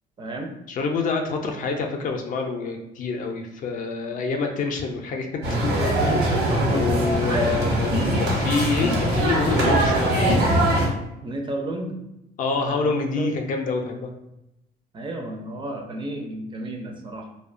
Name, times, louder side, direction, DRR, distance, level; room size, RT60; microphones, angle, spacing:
voice 1, 0.2-0.5 5.7-7.8 10.9-12.0 12.5-13.4 14.9-17.3, right 2 dB, 30° right, 3 dB, 0.4 m, -31 dB
voice 2, 0.7-5.7 6.6-10.6 12.4-14.1, left 4 dB, 50° left, 3 dB, 0.4 m, -27 dB
sound 1, 5.4-10.9, right 1 dB, 85° right, 1.0 m, -22 dB
2.6 x 2.2 x 2.5 m, 0.87 s
cardioid pair, 110°, 17 cm